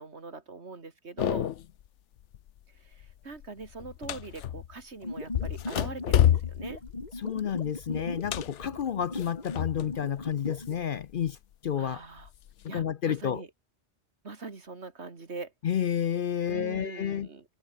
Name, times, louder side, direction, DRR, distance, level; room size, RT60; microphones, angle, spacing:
voice 1, 0.0-1.5 2.8-6.8 11.8-12.3 12.7-13.5 14.2-15.5 16.5-17.4, right 4 dB, 65° right, 2.7 m, -42 dB
sound 1, 1.2-1.8 2.2-2.6 2.9-4.8 5.3-10.0 10.3-11.3 11.9-12.7, left 11 dB, 80° left, 1.1 m, -30 dB
sound 2, 5.0-10.8, left 2 dB, 35° left, 3.1 m, -39 dB
voice 2, 7.2-11.4 11.6-12.0 12.6-13.4 15.6-17.3, left 9 dB, 55° left, 0.7 m, -30 dB
omnidirectional pair, 1.2 m